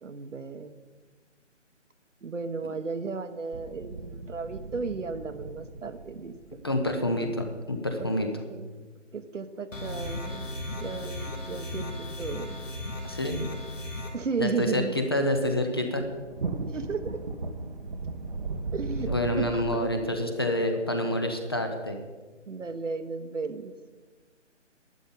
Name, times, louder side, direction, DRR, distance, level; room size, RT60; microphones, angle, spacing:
voice 1, 0.0-0.7 2.2-6.3 8.0-8.7 9.1-12.6 14.1-14.9 16.7-17.2 18.7-19.9 22.5-23.7, right 4 dB, 75° right, 10 dB, 1.1 m, -34 dB
sound 1, 3.5-7.4 14.4-19.8, right 3 dB, 40° right, 0.8 m, -37 dB
voice 2, 6.6-8.3 13.0-13.4 14.4-16.0 19.1-22.0, left 1 dB, 20° left, 5 dB, 0.6 m, -27 dB
sound 2, 9.7-14.1, left 1 dB, 90° left, 2.9 m, -36 dB
11.5 x 10.0 x 5.4 m, 1.4 s
figure-of-eight pair, 155°, 37 cm